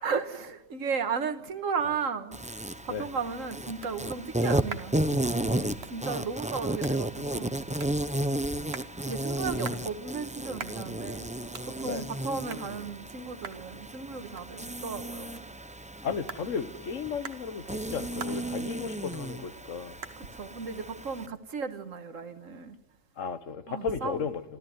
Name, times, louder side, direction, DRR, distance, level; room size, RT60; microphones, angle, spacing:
voice 1, 0.0-2.4 2.8-5.0 5.9-7.6 9.0-11.3 11.6-15.4 20.2-22.8 23.7-24.2, right 5 dB, 75° right, 1.8 m, -34 dB
Insect, 2.3-21.3, right 1 dB, 10° right, 0.4 m, -33 dB
sound 1, 4.3-22.2, right 5 dB, 55° right, 1.4 m, -48 dB
voice 2, 9.5-9.9 11.8-12.0 16.0-19.9 23.2-24.4, left 6 dB, 75° left, 1.5 m, -34 dB
27.5 x 13.0 x 9.4 m
omnidirectional pair, 1.3 m